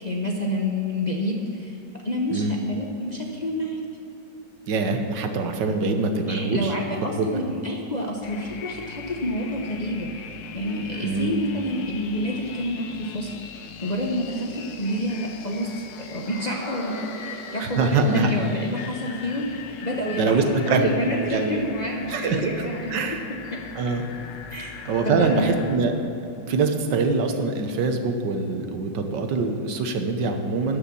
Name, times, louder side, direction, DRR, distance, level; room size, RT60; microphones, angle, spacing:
voice 1, 0.0-1.8 2.0-3.8 6.3-10.1 10.5-13.4 13.8-14.5 14.8-15.8 16.1-19.4 19.8-22.9 24.5-24.7 25.0-25.7, left 1 dB, 35° left, -1 dB, 0.8 m, -28 dB
voice 2, 4.7-6.7 7.2-7.3 11.0-11.3 17.6-18.3 20.1-21.0 21.3-21.6 22.1-23.2 23.7-24.0 24.8-25.9 26.4-30.8, right 4 dB, 80° right, 6 dB, 1.6 m, -24 dB
sound 1, 8.2-25.8, left 6 dB, 85° left, 1.5 m, -40 dB
sound 2, 16.2-20.6 20.8-20.9, right 1 dB, 15° right, 3.1 m, -42 dB
13.0 x 5.7 x 8.3 m, 2.8 s
omnidirectional pair, 1.9 m